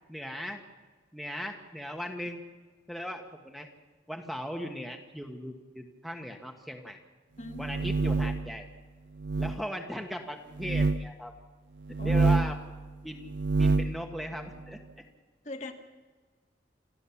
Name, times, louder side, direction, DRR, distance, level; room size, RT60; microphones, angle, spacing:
voice 1, 0.1-0.6 1.1-2.4 2.9-3.7 4.1-7.0 7.6-8.7 9.4-11.3 12.0-12.7 13.0-13.3 13.6-14.8, equal, ahead, 3 dB, 1.4 m, -38 dB
sound 1, 7.5-8.5 9.2-9.6 10.6-11.0 11.9-12.6 13.3-14.0, right 3 dB, 70° right, 0.6 m, -26 dB
voice 2, 12.0-12.3 15.4-15.7, left 2 dB, 40° left, 5 dB, 1.6 m, -40 dB
28.0 x 13.5 x 7.2 m, 1.4 s
head